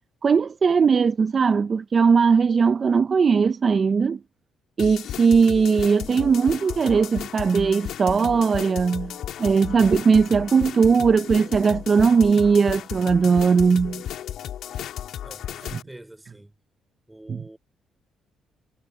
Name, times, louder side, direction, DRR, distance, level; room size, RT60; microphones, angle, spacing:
voice 1, 0.2-4.2 4.8-14.0 15.7-15.8 17.3-17.4, right 5 dB, 40° right, 0.8 m, -19 dB
sound 1, 4.8-15.8, left 10 dB, 75° left, 1.8 m, -34 dB
voice 2, 15.2-16.5 17.1-17.6, right 1 dB, 10° right, 4.2 m, -46 dB
cardioid pair, 90°, 0 cm